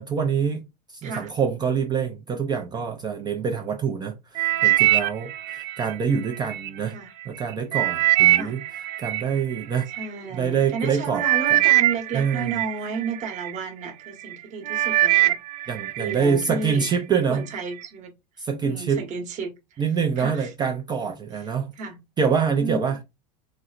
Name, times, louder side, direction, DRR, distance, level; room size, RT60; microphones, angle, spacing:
voice 1, 0.0-7.0 7.3-8.6 9.0-9.9 10.3-11.2 11.5-11.6 12.1-12.5 15.7-17.4 18.4-19.0 19.8-21.7 22.2-23.0, right 6 dB, 20° right, 0.4 m, -25 dB
sound 1, 4.4-6.7 7.2-10.1 10.8-10.9 11.2-13.6 14.1-14.4 14.7-16.2 16.5-17.0 17.6-17.7, right 15 dB, 85° right, 0.4 m, -22 dB
voice 2, 6.9-7.2 8.3-8.6 9.9-15.4 16.0-18.1 18.4-19.8 20.2-20.5 21.4-22.0 22.6-23.0, right 5 dB, 35° right, 1.0 m, -33 dB
4.0 x 2.0 x 2.4 m
supercardioid pair, 125°, 21 cm